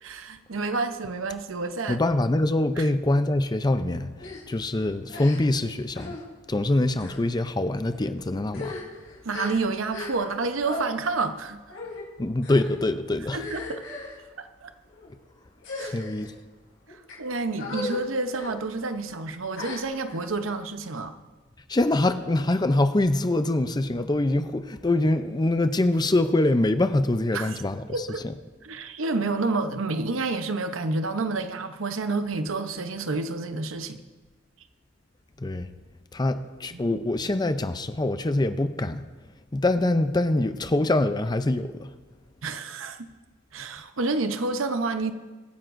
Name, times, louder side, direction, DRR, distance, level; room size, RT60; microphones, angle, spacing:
voice 1, 0.0-2.0 2.8-2.9 9.2-11.6 13.3-13.8 14.4-14.7 15.8-16.0 17.2-21.1 27.3-27.6 27.9-28.2 28.6-34.0 36.7-36.8 42.4-43.1 43.5-45.1, right 3 dB, 90° right, 8 dB, 0.8 m, -29 dB
voice 2, 1.9-4.1 4.5-6.2 6.5-8.7 12.2-13.4 15.8-16.3 21.7-27.8 28.2-28.3 35.4-35.7 36.1-39.0 39.5-41.9, left 2 dB, 20° left, 10 dB, 0.5 m, -24 dB
sound 1, 4.2-4.4 5.1-5.6 5.9-6.2 6.9-7.2 7.9-8.1 8.4-10.4 10.6-10.9 11.7-12.0 12.4-12.8 13.3-14.2 14.8-15.1 15.6-16.3 16.9-17.1 17.6-18.0 18.3-18.5 19.5-20.2, left 3 dB, 90° left, 3.5 m, -37 dB
24.0 x 9.6 x 2.6 m, 1.3 s
head